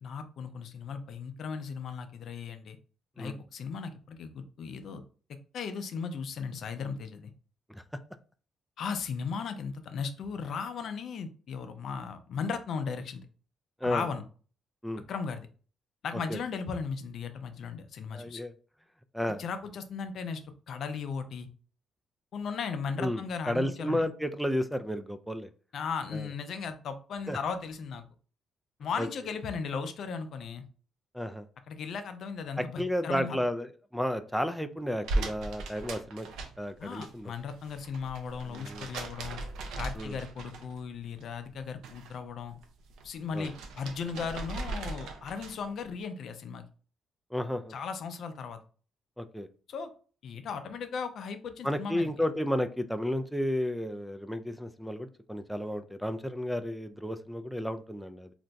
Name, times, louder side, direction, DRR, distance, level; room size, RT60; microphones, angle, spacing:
voice 1, 0.0-2.8 3.2-5.0 5.5-7.3 8.8-13.3 13.8-14.2 15.1-15.5 16.0-18.4 19.4-20.4 20.7-21.5 22.3-24.1 25.7-28.0 28.8-30.6 31.7-33.4 36.8-39.4 39.8-42.5 43.0-46.6 47.7-48.6 49.7-49.9 50.2-52.1, left 5 dB, 65° left, 9 dB, 0.4 m, -36 dB
voice 2, 18.1-18.5 19.1-19.4 23.0-25.5 26.1-26.3 27.3-27.4 29.0-29.1 31.1-31.5 32.6-33.7 33.9-36.3 36.6-37.3 38.5-38.9 40.0-40.2 43.3-43.5 47.3-47.7 49.2-49.5 51.6-58.3, equal, ahead, 7 dB, 0.3 m, -32 dB
sound 1, 35.0-37.1 37.4-40.9 41.2-42.2 42.5-45.7, right 2 dB, 85° right, 0.5 m, -38 dB
2.5 x 2.2 x 3.9 m, 0.40 s
cardioid pair, 80°, 0 cm